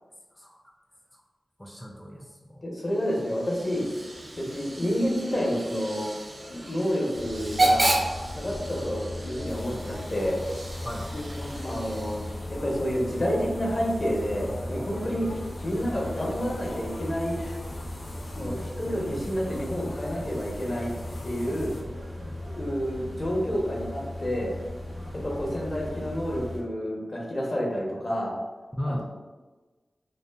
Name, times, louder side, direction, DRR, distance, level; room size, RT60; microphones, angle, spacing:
voice 1, 1.6-2.6 10.8-11.1 15.0-15.3 18.4-18.6 21.5-21.7 22.2-22.4 25.0-25.2 28.7-29.0, equal, 10° left, -1 dB, 0.4 m, -37 dB
voice 2, 2.6-3.9 4.4-6.1 6.5-8.0 8.3-10.4 11.6-12.3 12.6-15.3 15.6-17.4 18.4-20.9 21.2-21.7 22.5-24.6 25.2-28.3 28.8-29.0, equal, 55° left, -2 dB, 0.7 m, -29 dB
Hiss / Train / Alarm, 2.9-12.5, right 1 dB, 55° right, 0.4 m, -32 dB
sound 1, 7.1-26.6, left 1 dB, 85° right, 0.8 m, -38 dB
sound 2, 9.5-21.8, left 1 dB, 85° left, 0.4 m, -41 dB
2.6 x 2.4 x 2.2 m, 1.3 s
cardioid pair, 45°, 0 cm